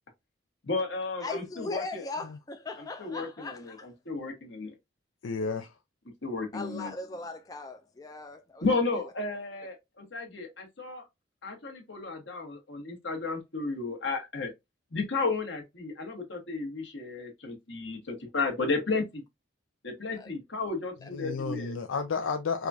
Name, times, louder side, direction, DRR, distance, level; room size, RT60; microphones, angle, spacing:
voice 1, 0.6-2.0 2.8-4.7 6.2-6.9 8.6-11.0 11.4-14.5 14.9-19.2 19.8-21.7, left 3 dB, 65° left, 1.4 m, -33 dB
voice 2, 1.2-3.9 6.5-8.6 20.1-20.3, left 3 dB, 20° left, 0.3 m, -39 dB
voice 3, 5.2-5.7 21.1-22.7, left 5 dB, 85° left, 0.4 m, -32 dB
4.8 x 2.4 x 2.6 m
head